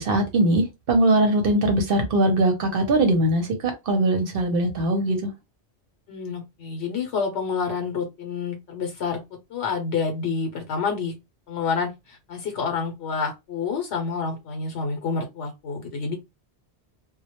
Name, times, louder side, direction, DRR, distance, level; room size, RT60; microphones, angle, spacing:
voice 1, 0.0-5.3, right 1 dB, 60° right, 0.8 m, -21 dB
voice 2, 6.1-9.2 9.5-11.1 11.5-16.2, left 5 dB, 75° left, 0.9 m, -28 dB
2.1 x 2.0 x 2.8 m
omnidirectional pair, 1.1 m